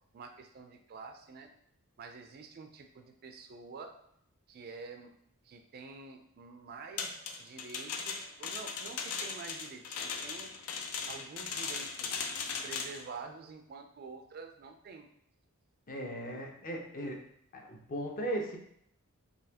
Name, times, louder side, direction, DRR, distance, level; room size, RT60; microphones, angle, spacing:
voice 1, 0.1-1.5 2.0-3.9 4.5-5.2 5.4-10.0 10.2-10.5 11.1-12.3 12.6-15.1, right 4 dB, 45° right, 5 dB, 0.3 m, -48 dB
sound 1, 7.0-13.0, left 5 dB, 85° left, 0.5 m, -38 dB
voice 2, 15.9-17.2 17.5-18.6, right 1 dB, 40° left, 1 dB, 0.6 m, -37 dB
3.9 x 2.8 x 2.8 m, 0.70 s
head